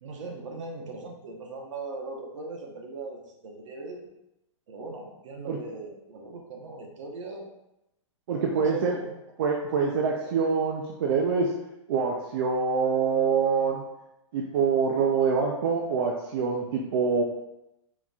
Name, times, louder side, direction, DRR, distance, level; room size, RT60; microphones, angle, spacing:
voice 1, 0.0-4.1 4.7-7.5 8.3-9.1 9.8-10.3, right 3 dB, 70° right, 0 dB, 1.1 m, -39 dB
voice 2, 8.3-9.0 9.4-11.5 11.9-13.8 14.3-17.2, right 5 dB, 50° right, 0 dB, 0.5 m, -25 dB
4.5 x 4.0 x 2.3 m, 0.87 s
hypercardioid pair, 165°, 16 cm